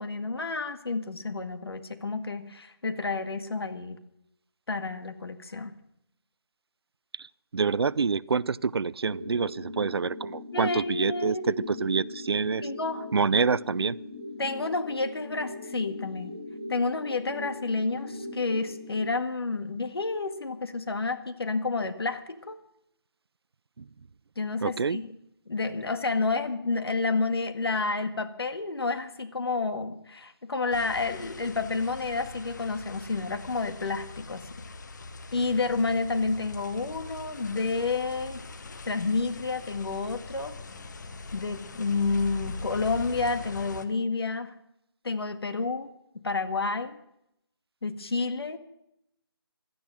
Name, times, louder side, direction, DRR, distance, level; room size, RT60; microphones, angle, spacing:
voice 1, 0.0-4.0 4.7-5.7 10.5-11.7 12.6-13.0 14.4-16.4 16.7-22.6 24.3-25.1 25.5-34.5 35.3-38.4 38.9-40.6 41.3-44.5 45.0-45.9 46.2-47.0 47.8-48.6, left 3 dB, 70° left, 1.7 m, -30 dB
voice 2, 7.5-12.7 13.1-14.0 23.8-23.9 24.6-25.0, right 5 dB, 75° right, 0.5 m, -27 dB
sound 1, 9.0-19.0, left 2 dB, 15° left, 2.1 m, -40 dB
sound 2, 30.7-43.8, left 3 dB, 45° left, 1.2 m, -42 dB
17.0 x 12.0 x 6.3 m
figure-of-eight pair, 165°, 13 cm